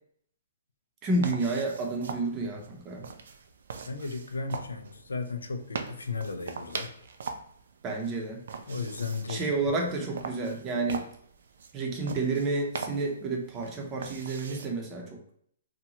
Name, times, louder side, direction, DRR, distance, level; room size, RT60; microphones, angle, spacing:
voice 1, 1.0-3.1 7.8-8.4 9.3-11.1 11.7-15.3, right 3 dB, 25° right, 0.6 m, -30 dB
sound 1, 1.2-14.7, right 5 dB, 70° right, 0.3 m, -42 dB
voice 2, 3.9-7.0 8.7-9.4, left 4 dB, 90° left, 0.4 m, -35 dB
2.8 x 2.2 x 2.8 m
hypercardioid pair, 135°, 0 cm